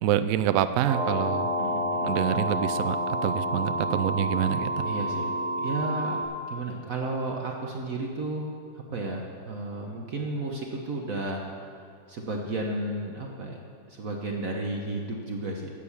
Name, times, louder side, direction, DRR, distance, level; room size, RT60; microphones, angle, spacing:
voice 1, 0.0-1.5 2.0-4.8, right 10 dB, 70° right, 11 dB, 0.8 m, -26 dB
sound 1, 0.8-6.2, equal, 55° left, 3.2 m, -29 dB
voice 2, 1.6-2.1 4.8-6.2 6.5-8.5 8.7-11.5 12.1-13.6 13.9-15.7, right 2 dB, 55° right, 0 dB, 1.3 m, -33 dB
13.5 x 8.3 x 7.1 m, 2.2 s
omnidirectional pair, 1.9 m